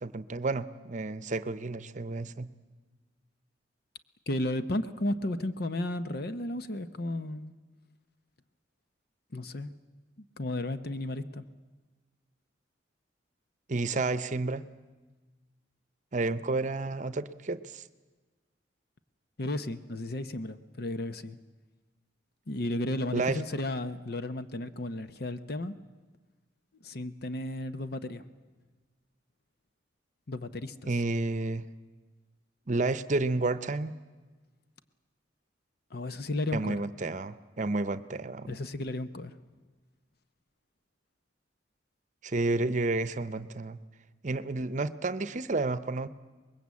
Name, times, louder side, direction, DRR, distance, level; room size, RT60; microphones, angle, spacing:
voice 1, 0.0-2.5 13.7-14.6 16.1-17.8 23.1-23.4 30.8-31.6 32.7-33.9 36.5-38.6 42.2-43.8 44.2-46.1, right 3 dB, 40° right, 14 dB, 0.8 m, -31 dB
voice 2, 4.3-7.5 9.3-9.7 10.4-11.4 19.4-21.4 22.5-25.8 26.8-28.2 30.3-30.9 35.9-36.8 38.5-39.4, left 1 dB, 55° left, 11 dB, 0.9 m, -33 dB
24.5 x 21.0 x 8.4 m, 1.3 s
head